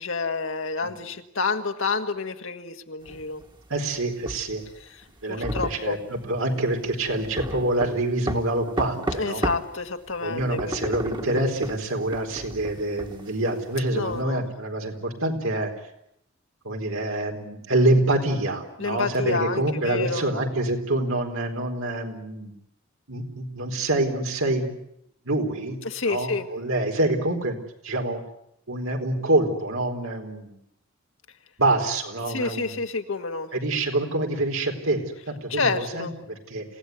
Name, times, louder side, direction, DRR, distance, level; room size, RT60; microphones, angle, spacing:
voice 1, 0.0-3.4 4.9-5.0 5.3-6.0 9.2-10.9 13.9-14.5 18.8-20.2 25.8-26.5 32.3-33.5 35.5-36.1, left 4 dB, 70° left, 6 dB, 1.8 m, -29 dB
sound 1, 3.1-9.7 10.1-14.2, right 1 dB, 25° right, 1.7 m, -33 dB
voice 2, 3.7-4.6 5.2-9.4 10.2-15.7 16.6-22.5 23.1-24.7 25.2-25.8 26.1-27.6 27.8-28.2 28.7-30.6 31.6-32.8 33.5-36.6, right 2 dB, 85° right, 3 dB, 4.3 m, -26 dB
28.0 x 17.0 x 9.5 m, 0.79 s
head